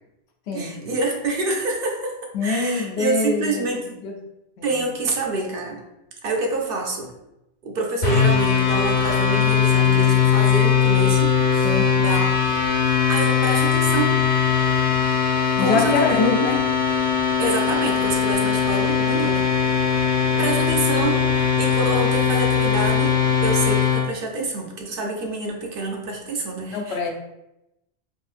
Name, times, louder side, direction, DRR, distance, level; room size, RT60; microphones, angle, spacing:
voice 1, 0.5-4.0 4.6-5.8 6.2-7.1 7.6-11.3 11.6-12.4 13.1-14.2 15.6-16.5 17.4-19.9 20.4-21.3 21.6-27.1, right 3 dB, 65° right, 1 dB, 0.8 m, -27 dB
voice 2, 2.3-3.7 4.0-4.1 4.6-4.8 11.6-11.9 15.6-16.6 26.7-27.1, left 4 dB, 85° left, 2 dB, 0.9 m, -24 dB
sound 1, 8.0-24.1, left 7 dB, 60° left, 1.0 m, -20 dB
3.7 x 2.5 x 2.4 m, 0.88 s
omnidirectional pair, 1.1 m